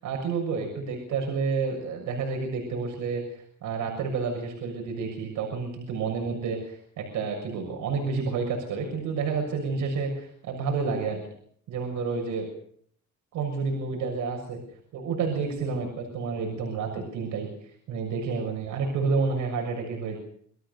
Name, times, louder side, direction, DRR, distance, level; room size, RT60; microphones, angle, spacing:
voice 1, 0.0-11.2 11.7-12.5 13.3-14.6 14.9-20.2, right 4 dB, 80° right, 1 dB, 6.7 m, -30 dB
27.5 x 19.0 x 6.9 m, 0.63 s
cardioid pair, 100°, 30 cm